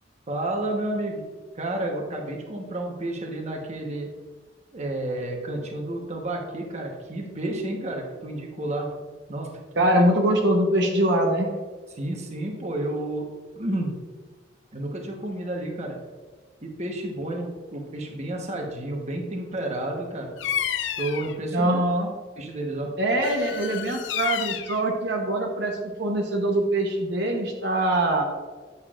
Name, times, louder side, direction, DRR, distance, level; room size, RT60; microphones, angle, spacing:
voice 1, 0.3-1.2 1.5-4.1 4.7-8.9 9.3-9.5 9.8-9.9 12.0-13.2 13.5-13.9 14.7-16.0 16.6-20.3 21.0-21.8 22.4-22.9, right 1 dB, 35° right, 1 dB, 1.1 m, -31 dB
voice 2, 9.8-11.5 21.5-22.1 23.0-28.2, right 1 dB, 65° right, 1 dB, 0.9 m, -23 dB
Bird vocalization bird call bird song, 20.4-21.4 23.2-24.8, left 10 dB, 75° left, 0.4 m, -30 dB
9.0 x 6.8 x 2.5 m, 1.4 s
head